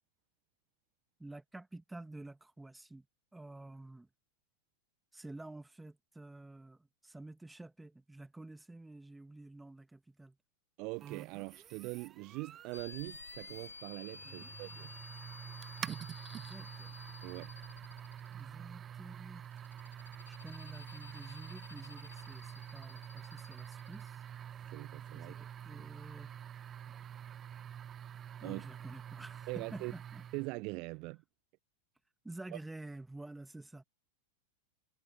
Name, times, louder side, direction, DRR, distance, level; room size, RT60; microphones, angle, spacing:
voice 1, 1.2-3.1 3.3-4.1 5.1-10.4 14.3-14.5 16.3-17.0 18.4-19.5 20.3-24.2 25.1-26.4 28.4-30.2 32.2-33.8, right 2 dB, 5° right, 2.5 m, -50 dB
voice 2, 10.8-14.9 17.2-17.5 24.7-25.3 25.7-25.9 28.4-28.7 29.5-29.9 30.3-31.2 32.5-32.6, right 28 dB, 45° right, 0.6 m, -42 dB
sound 1, 11.0-30.6, right 9 dB, 25° right, 1.1 m, -47 dB
sound 2, 12.7-18.6 19.4-24.4, left 4 dB, 80° left, 0.9 m, -52 dB
figure-of-eight pair, 90°, 0 cm